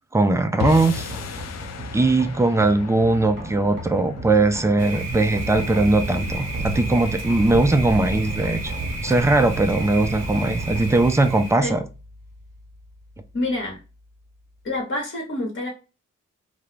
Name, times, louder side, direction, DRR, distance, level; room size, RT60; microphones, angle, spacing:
voice 1, 0.1-1.1 1.9-8.7 9.0-11.8, right 2 dB, 10° right, 0.4 m, -20 dB
sound 1, 0.6-7.0, left 6 dB, 55° left, 0.4 m, -36 dB
sound 2, 0.9-14.8, equal, 35° right, 1.0 m, -37 dB
Thunder, 4.8-11.6, right 2 dB, 55° right, 0.6 m, -30 dB
voice 2, 13.3-13.8 14.6-15.7, left 2 dB, 40° left, 1.0 m, -27 dB
2.3 x 2.0 x 3.1 m
cardioid pair, 60°, 31 cm